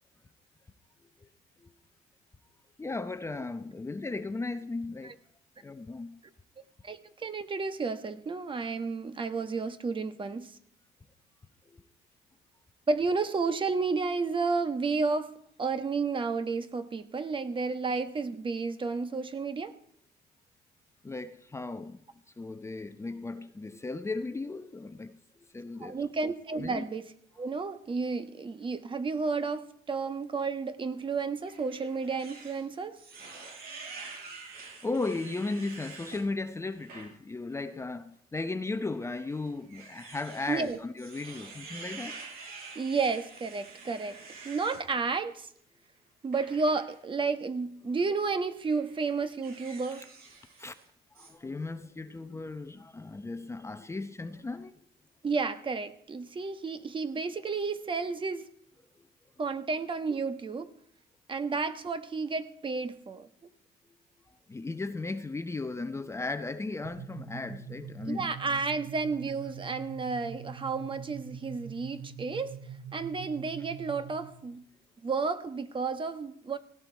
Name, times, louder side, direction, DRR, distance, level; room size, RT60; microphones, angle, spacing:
voice 1, 2.8-5.2 5.6-6.2 11.7-11.8 21.0-22.0 22.4-26.1 26.6-26.9 34.6-42.2 50.0-50.1 50.6-50.7 51.1-54.8 59.0-59.1 64.5-68.3, left 3 dB, 15° left, 0.8 m, -36 dB
voice 2, 6.8-10.5 12.9-15.3 15.6-19.7 25.8-27.1 27.4-33.0 40.5-40.8 42.7-44.2 44.4-45.5 46.2-50.1 55.2-58.5 59.4-60.7 61.3-63.5 68.0-72.6 72.9-74.6 75.0-76.6, right 4 dB, 30° right, 1.3 m, -32 dB
sound 1, 31.4-36.2 36.7-37.1 37.5-37.6 38.7-44.8 46.3-47.0 47.9-48.2 48.6-50.9 51.2-51.3, right 4 dB, 65° right, 7.6 m, -47 dB
sound 2, 66.8-74.4, right 6 dB, 80° right, 6.0 m, -44 dB
17.5 x 16.5 x 4.6 m
cardioid pair, 110°, 17 cm